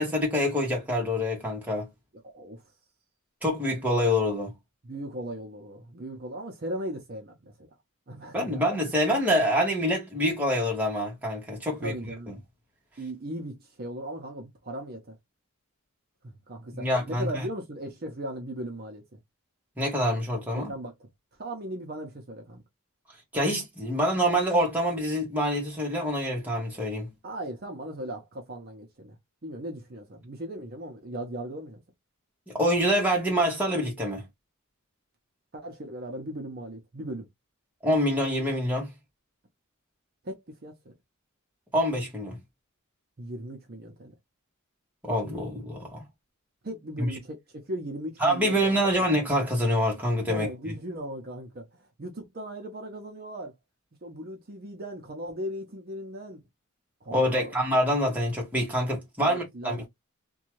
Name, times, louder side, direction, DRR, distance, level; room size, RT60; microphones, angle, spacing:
voice 1, 0.0-1.9 3.4-4.5 8.3-11.9 16.7-17.4 19.8-20.7 23.3-27.1 32.5-34.2 37.8-38.9 41.7-42.4 45.0-46.1 47.0-47.1 48.2-50.5 57.1-59.8, equal, 5° right, 1.1 m, -26 dB
voice 2, 4.8-7.7 8.1-8.7 11.8-12.3 13.0-15.1 16.5-19.0 20.7-21.1 21.4-22.6 27.2-29.2 29.4-31.8 35.5-37.3 40.2-40.9 43.2-44.1 46.6-48.8 50.3-53.5 54.0-56.4 57.0-57.5 59.2-59.9, right 1 dB, 45° right, 0.6 m, -38 dB
2.7 x 2.3 x 3.0 m
head